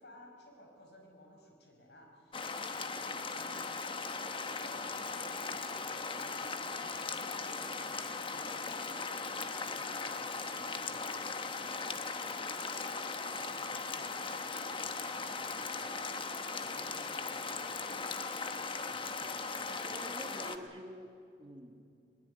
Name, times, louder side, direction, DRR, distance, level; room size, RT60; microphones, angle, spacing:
voice 1, 0.0-3.7 4.4-16.0 16.6-20.3, equal, 75° left, 2 dB, 5.4 m, -60 dB
sound 1, 2.3-20.6, left 4 dB, 30° left, 1.1 m, -38 dB
voice 2, 19.7-21.9, right 1 dB, 30° right, 5 dB, 1.6 m, -48 dB
21.0 x 21.0 x 9.4 m, 2.5 s
head